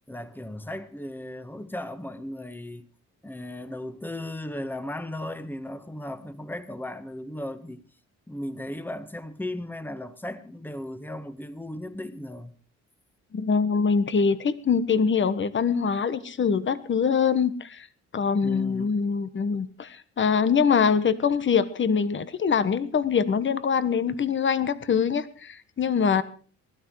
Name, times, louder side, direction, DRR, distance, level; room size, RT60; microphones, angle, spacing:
voice 1, 0.1-2.9 3.2-7.8 8.3-12.5 18.4-18.9 26.2-26.3, left 1 dB, 5° left, 1.5 m, -36 dB
voice 2, 13.3-17.9 18.1-26.2, left 6 dB, 40° left, 1.4 m, -24 dB
20.5 x 12.5 x 4.8 m
cardioid pair, 90°, 30 cm